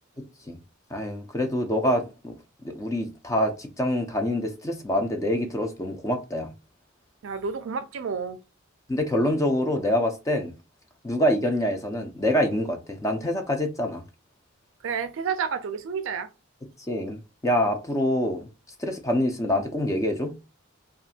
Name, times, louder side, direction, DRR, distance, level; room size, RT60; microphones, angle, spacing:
voice 1, 0.2-0.6 0.9-2.4 2.6-6.5 8.9-10.5 11.0-14.0 16.9-18.5 18.8-20.5, left 1 dB, 15° left, 0.4 m, -26 dB
voice 2, 7.2-8.4 14.8-16.3, right 6 dB, 65° right, 0.4 m, -30 dB
2.5 x 2.4 x 2.7 m
head